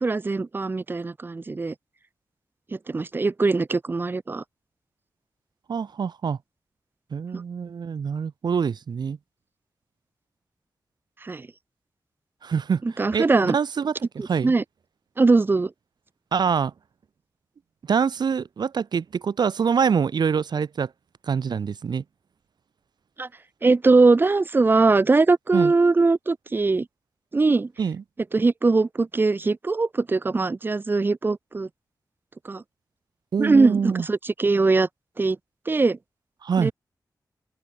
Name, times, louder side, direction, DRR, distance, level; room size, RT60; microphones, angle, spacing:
voice 1, 0.0-1.7 2.9-4.4 7.3-7.4 11.2-11.5 12.8-13.6 14.2-14.6 15.2-15.7 23.2-23.3 23.6-26.9 27.3-27.7 28.3-31.7 32.4-32.6 33.4-34.9 35.2-35.4 35.7-36.0 36.6-36.7, right 3 dB, 30° right, 0.5 m, -21 dB
voice 2, 5.7-6.4 7.1-9.2 12.4-12.8 13.1-14.5 16.3-16.7 17.9-20.9 21.3-22.0 25.5-25.7 27.8-28.0 33.3-34.1 36.4-36.7, right 6 dB, 80° right, 2.1 m, -25 dB
open air
wide cardioid pair, 105°, 7 cm